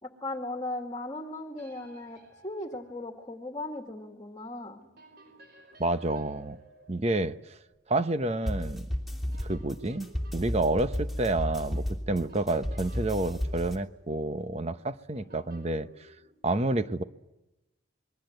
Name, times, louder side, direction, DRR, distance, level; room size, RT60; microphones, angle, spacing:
voice 1, 0.0-4.8, left 2 dB, 20° left, 2.2 m, -37 dB
sound 1, 1.5-3.6 4.8-8.0 9.1-16.3, right 1 dB, 50° right, 5.1 m, -56 dB
voice 2, 5.8-6.6 6.9-7.6 7.9-8.9 9.4-16.1 16.4-17.0, right 2 dB, 30° right, 1.0 m, -29 dB
sound 2, 8.5-13.8, equal, ahead, 2.9 m, -33 dB
27.0 x 22.0 x 8.0 m
head